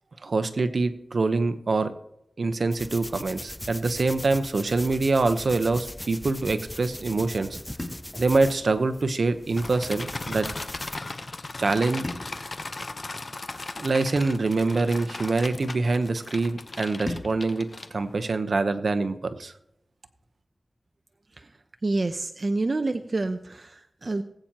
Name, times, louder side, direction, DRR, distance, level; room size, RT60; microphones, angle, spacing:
voice 1, 0.2-1.9 2.4-7.6 8.2-10.5 11.6-12.0 13.8-19.5, right 3 dB, 65° right, 10 dB, 0.9 m, -25 dB
sound 1, 2.7-11.0, left 1 dB, 10° left, 0.5 m, -40 dB
sound 2, 3.1-5.4 7.8-10.1 12.0-14.5 17.1-19.6, left 1 dB, 30° left, 2.0 m, -43 dB
sound 3, 9.6-18.3, left 3 dB, 50° left, 0.9 m, -37 dB
voice 2, 21.8-24.2, right 2 dB, 45° right, 7 dB, 0.6 m, -28 dB
19.5 x 8.8 x 2.9 m, 0.78 s
wide cardioid pair, 75°, 0 cm